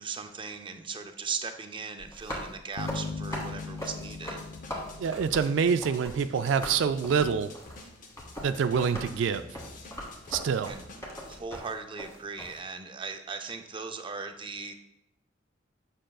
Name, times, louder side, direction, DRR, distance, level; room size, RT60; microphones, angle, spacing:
voice 1, 0.0-4.6 10.6-10.9 11.1-14.8, right 5 dB, 25° right, 6 dB, 0.5 m, -38 dB
sound 1, 2.0-6.2 6.4-12.6, equal, 15° left, 1.4 m, -40 dB
sound 2, 2.8-6.2, left 4 dB, 65° left, 0.4 m, -39 dB
sound 3, 3.1-11.4, left 2 dB, 45° left, 0.8 m, -49 dB
voice 2, 5.0-7.5 8.4-9.5 10.3-10.8, right 6 dB, 85° right, 10 dB, 0.3 m, -26 dB
7.6 x 6.2 x 2.3 m, 0.81 s
head